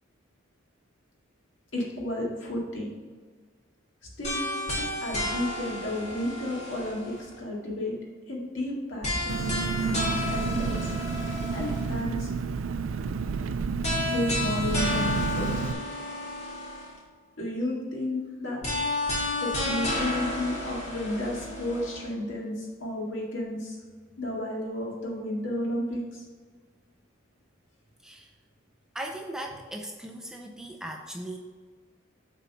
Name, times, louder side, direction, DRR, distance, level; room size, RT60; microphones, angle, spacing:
voice 1, 1.7-2.9 4.2-4.5 4.8-7.9 8.3-9.4 9.8-10.9 11.5-12.3 14.0-15.8 17.4-18.6 19.4-23.8 24.2-26.2, left 1 dB, 65° left, -2 dB, 2.0 m, -32 dB
sound 1, 4.2-7.4 9.0-12.0 13.8-17.0 18.6-22.1, left 1 dB, 30° left, 2.0 m, -32 dB
Engine, 9.3-15.7, right 5 dB, 75° right, 0.4 m, -30 dB
voice 2, 28.9-31.4, right 1 dB, 5° right, 2 dB, 0.4 m, -38 dB
7.2 x 4.1 x 5.5 m, 1.5 s
head